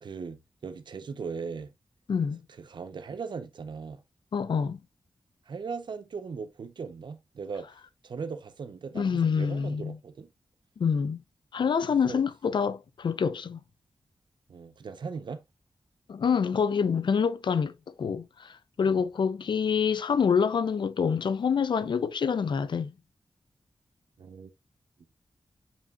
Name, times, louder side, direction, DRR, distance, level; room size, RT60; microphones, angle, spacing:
voice 1, 0.0-1.7 2.6-4.0 5.5-7.7 8.0-10.3 11.9-12.2 14.5-15.4 18.8-19.0 24.2-24.5, right 5 dB, 65° right, 0.8 m, -38 dB
voice 2, 2.1-2.4 4.3-4.8 8.9-10.0 10.8-11.2 11.5-13.6 16.1-22.9, left 6 dB, 70° left, 0.6 m, -26 dB
7.2 x 5.6 x 2.4 m
wide cardioid pair, 150°, 8 cm